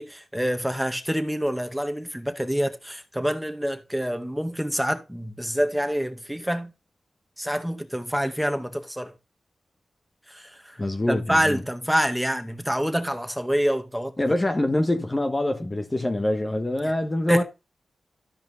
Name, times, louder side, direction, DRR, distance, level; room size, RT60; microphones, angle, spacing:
voice 1, 0.0-6.7 7.4-9.1 10.3-10.8 11.1-14.2 16.8-16.9 17.3-17.4, equal, 5° right, 2.0 m, -26 dB
voice 2, 10.8-11.6 14.2-17.4, left 1 dB, 25° left, 1.5 m, -25 dB
13.5 x 5.1 x 3.8 m
cardioid pair, 50°, 0 cm